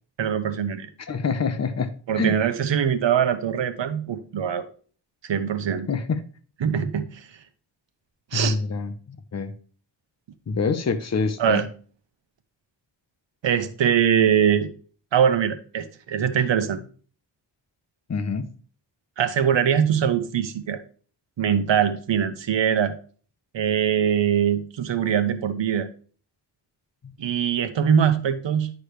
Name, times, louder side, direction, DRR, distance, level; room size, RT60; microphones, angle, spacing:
voice 1, 0.2-0.9 2.1-4.7 5.2-5.9 6.6-7.3 8.3-8.6 11.4-11.7 13.4-14.7 15.1-16.8 19.2-20.8 21.4-22.9 23.5-25.9 27.2-28.7, right 8 dB, 85° right, 1.0 m, -22 dB
voice 2, 1.0-2.4 5.9-6.2 8.3-9.5 10.5-11.6 18.1-18.5, left 4 dB, 40° left, 0.8 m, -26 dB
10.5 x 4.9 x 3.2 m
wide cardioid pair, 140°, 43 cm